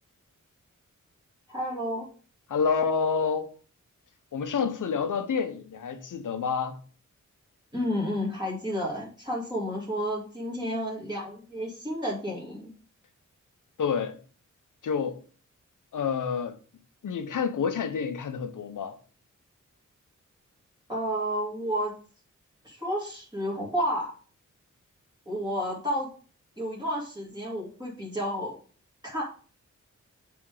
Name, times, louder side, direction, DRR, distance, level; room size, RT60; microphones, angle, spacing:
voice 1, 1.5-2.1 7.7-12.7 20.9-21.9 22.6-24.1 25.3-26.1 26.6-28.6 29.1-29.2, equal, 15° right, 2.5 m, -31 dB
voice 2, 2.5-3.5 4.3-6.8 13.8-14.2 14.8-15.2 15.9-16.6 17.0-19.0, left 6 dB, 85° left, 0.9 m, -28 dB
7.6 x 3.5 x 4.9 m
wide cardioid pair, 85°, 30 cm